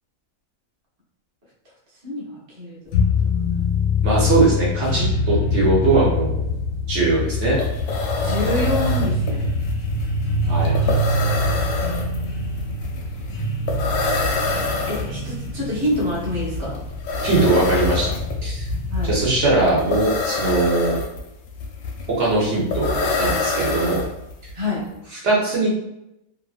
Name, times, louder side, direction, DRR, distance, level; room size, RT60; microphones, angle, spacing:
voice 1, 2.0-2.9 3.4-3.6 8.2-9.5 10.8-11.3 14.9-16.8 18.9-19.1 24.5-24.9, left 2 dB, 20° right, -6 dB, 0.6 m, -27 dB
sound 1, 2.9-19.7, left 2 dB, 65° left, 0.9 m, -24 dB
voice 2, 4.0-6.5 6.9-7.6 10.5-10.7 17.2-18.1 18.4-18.7 19.0-20.9 22.2-24.0 25.2-25.7, right 3 dB, 55° right, -6 dB, 1.0 m, -20 dB
sound 2, 7.1-7.2 7.4-24.5, left 3 dB, 85° left, 1.1 m, -27 dB
2.9 x 2.4 x 2.4 m, 0.88 s
omnidirectional pair, 1.6 m